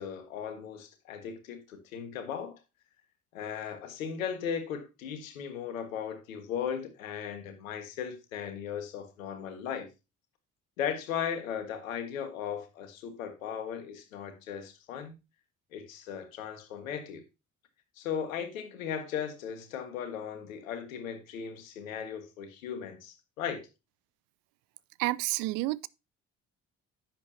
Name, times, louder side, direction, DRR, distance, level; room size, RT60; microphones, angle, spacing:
voice 1, 0.0-2.6 3.3-9.9 10.8-15.1 15.7-17.2 18.0-23.7, left 8 dB, 80° left, 1.6 m, -37 dB
voice 2, 25.0-25.9, right 19 dB, 60° right, 0.5 m, -29 dB
10.5 x 7.6 x 2.7 m
figure-of-eight pair, 50°, 40 cm